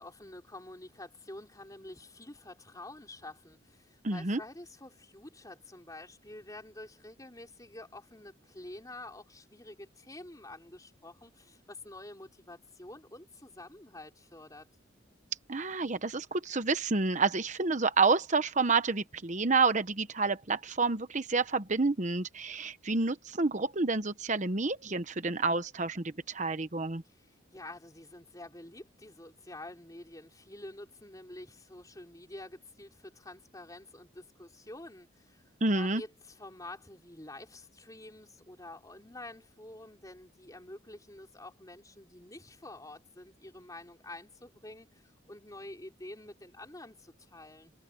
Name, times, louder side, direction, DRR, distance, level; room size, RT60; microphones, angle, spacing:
voice 1, 0.0-14.7 27.0-35.4 35.7-47.7, left 2 dB, 20° left, 4.4 m, -48 dB
voice 2, 4.0-4.4 15.5-27.0 35.6-36.0, right 3 dB, 40° right, 1.0 m, -29 dB
head